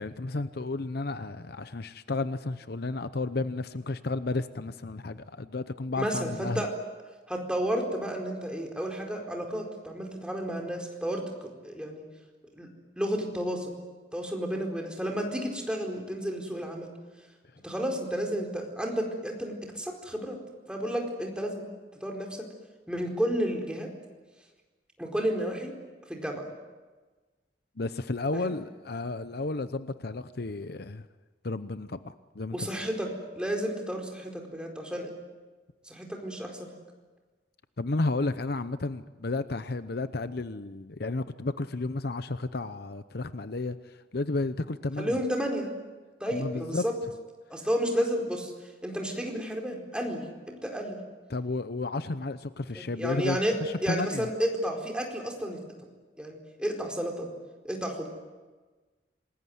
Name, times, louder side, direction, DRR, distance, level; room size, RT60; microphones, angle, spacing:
voice 1, 0.0-6.6 27.8-31.1 31.4-32.7 37.8-45.2 46.3-46.8 51.3-54.3, left 3 dB, 60° left, 12 dB, 0.8 m, -32 dB
voice 2, 6.0-6.7 7.3-12.0 12.5-12.7 13.0-13.7 14.1-16.9 17.6-20.4 20.7-21.6 22.0-22.5 22.9-23.9 25.0-25.7 26.1-26.5 28.3-28.5 32.5-33.1 33.3-35.1 35.8-36.7 45.0-45.7 46.2-46.9 47.5-48.5 48.8-51.0 52.7-53.6 53.8-55.6 56.2-57.3 57.6-58.1, equal, 5° right, 1 dB, 4.4 m, -31 dB
27.5 x 20.5 x 9.5 m, 1.3 s
head